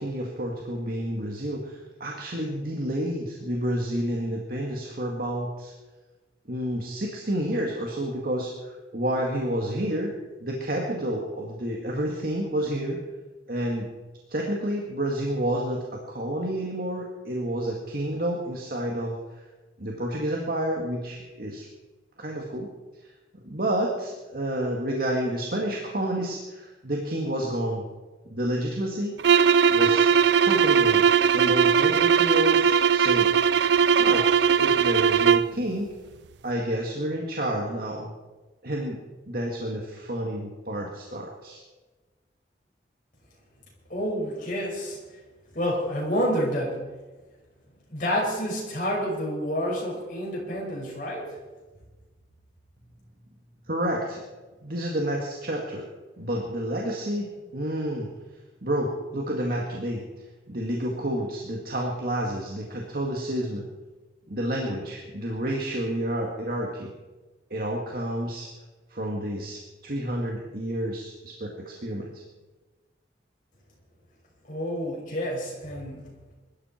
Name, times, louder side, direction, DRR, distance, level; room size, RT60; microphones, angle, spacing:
voice 1, 0.0-5.7 6.5-10.1 10.4-13.0 13.5-13.9 14.3-19.2 19.8-21.7 22.2-22.7 23.0-23.1 23.4-27.8 28.3-29.1 29.7-30.1 30.4-31.0 31.3-33.3 34.0-34.3 34.6-35.9 36.4-38.1 38.6-39.0 39.3-41.6 53.7-54.2 54.6-55.9 56.2-58.1 58.6-60.0 60.5-63.7 64.3-66.9 67.5-68.5 68.9-72.1, right 1 dB, 55° right, -1 dB, 2.0 m, -29 dB
sound 1, 29.2-35.6, right 7 dB, 80° right, 0.4 m, -19 dB
voice 2, 43.9-45.0 45.5-46.9 47.9-51.3 74.5-76.1, equal, 50° left, -2 dB, 5.8 m, -29 dB
22.0 x 13.0 x 4.5 m, 1.2 s
head